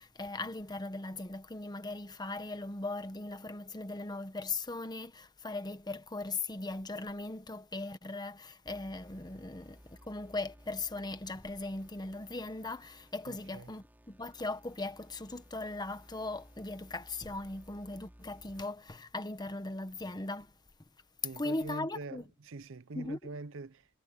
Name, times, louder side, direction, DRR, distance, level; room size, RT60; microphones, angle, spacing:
voice 1, 0.0-20.5 21.4-22.2 22.9-23.2, left 2 dB, 20° left, 1.2 m, -39 dB
sound 1, 8.7-18.6, equal, 10° right, 3.0 m, -58 dB
voice 2, 13.3-13.7 21.2-23.9, right 3 dB, 60° right, 0.7 m, -44 dB
head